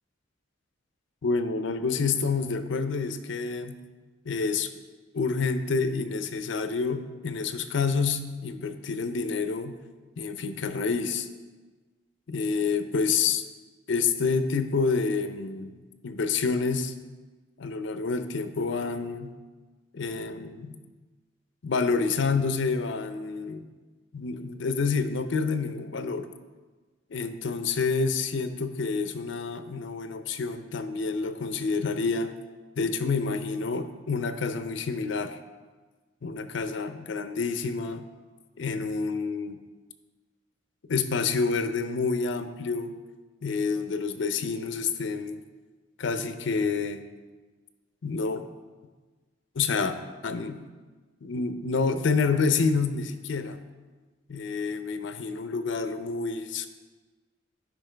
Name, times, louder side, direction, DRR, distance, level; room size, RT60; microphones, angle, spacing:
voice 1, 1.2-3.8 4.3-4.7 5.1-9.8 10.2-11.3 12.3-13.4 13.9-16.9 17.6-19.3 19.9-20.8 21.6-23.7 24.1-26.3 27.1-32.3 32.8-35.4 36.2-38.0 38.6-39.6 40.9-42.9 43.4-45.4 46.0-47.0 48.0-48.4 49.6-50.0 50.2-50.6 51.2-53.7 54.3-56.7, left 4 dB, 70° left, 9 dB, 0.5 m, -28 dB
10.5 x 5.2 x 3.3 m, 1.3 s
head